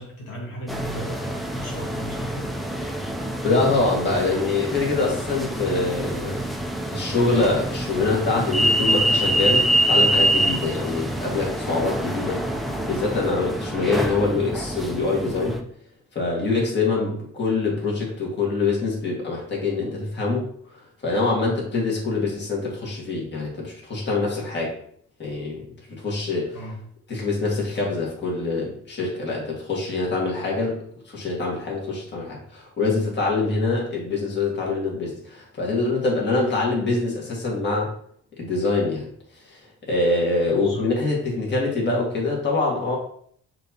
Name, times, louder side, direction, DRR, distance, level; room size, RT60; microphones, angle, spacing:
voice 1, 0.0-2.5 16.8-17.1 26.5-26.7 40.5-40.9, equal, 90° left, -2 dB, 1.6 m, -36 dB
sound 1, 0.7-15.6, right 1 dB, ahead, 0.5 m, -25 dB
voice 2, 3.4-6.4 6.9-12.4 12.8-15.6 16.2-20.5 21.0-24.8 25.2-25.6 25.9-26.6 27.1-30.8 31.1-37.9 38.4-39.1 39.5-43.0, left 3 dB, 35° left, -3 dB, 1.8 m, -24 dB
6.3 x 2.9 x 2.8 m, 0.62 s
cardioid pair, 90°, 30 cm